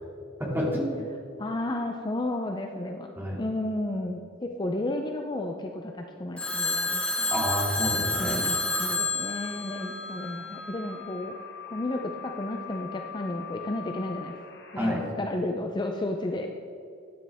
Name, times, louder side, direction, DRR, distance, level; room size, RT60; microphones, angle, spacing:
voice 1, 0.4-1.0 3.2-3.4 7.3-8.5 14.8-15.1, equal, 10° right, -3 dB, 2.5 m, -29 dB
voice 2, 1.4-3.1 3.4-7.4 8.2-11.3 11.7-14.3 14.7-16.5, left 1 dB, 25° left, 3 dB, 0.6 m, -32 dB
Telephone, 6.4-10.6, left 2 dB, 5° left, 2.1 m, -29 dB
sound 1, 8.1-15.0, left 5 dB, 60° left, 1.6 m, -42 dB
13.5 x 9.9 x 3.5 m, 2.5 s
head